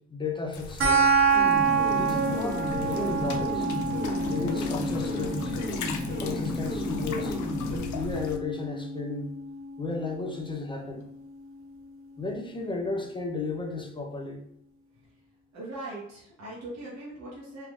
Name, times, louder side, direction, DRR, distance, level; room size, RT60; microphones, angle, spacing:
voice 1, 0.1-1.1 1.9-3.7 4.2-5.5 6.2-7.4 7.7-9.3 9.8-11.1 12.2-14.4, left 3 dB, 15° left, 2 dB, 0.5 m, -33 dB
sound 1, 0.5-8.4, left 5 dB, 75° left, 0.5 m, -40 dB
sound 2, 0.8-11.8, right 4 dB, 45° right, 0.7 m, -29 dB
sound 3, 1.3-7.8, left 1 dB, 35° left, 1.2 m, -33 dB
voice 2, 15.5-17.7, right 2 dB, 60° right, -7 dB, 1.0 m, -40 dB
3.3 x 2.5 x 2.3 m, 0.73 s
cardioid pair, 90°, 30 cm